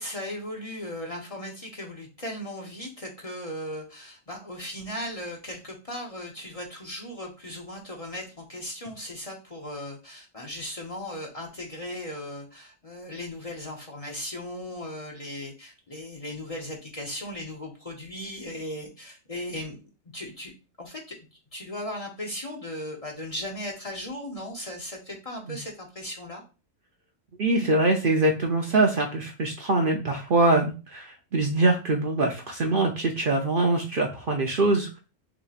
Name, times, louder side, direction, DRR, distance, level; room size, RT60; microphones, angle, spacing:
voice 1, 0.0-19.8 20.1-20.5 20.8-21.1 21.5-26.4, left 1 dB, 35° left, 0 dB, 0.8 m, -37 dB
voice 2, 27.4-34.9, right 2 dB, 55° right, 3 dB, 0.7 m, -23 dB
6.1 x 2.9 x 2.4 m, 0.31 s
omnidirectional pair, 1.3 m